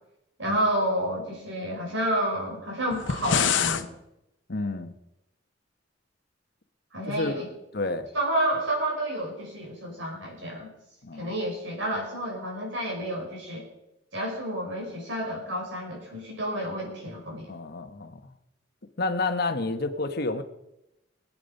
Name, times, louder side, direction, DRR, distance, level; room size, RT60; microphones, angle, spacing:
voice 1, 0.4-3.9 6.9-7.5 8.1-10.7 11.1-13.7 14.1-17.5, right 1 dB, 70° right, 0 dB, 5.3 m, -30 dB
sound 1, 2.9-3.9, left 7 dB, 75° left, 0.9 m, -25 dB
voice 2, 4.5-4.9 7.0-8.1 11.0-11.3 17.5-18.2 19.0-20.4, left 3 dB, 55° left, 8 dB, 1.2 m, -30 dB
22.0 x 8.6 x 5.4 m, 0.89 s
head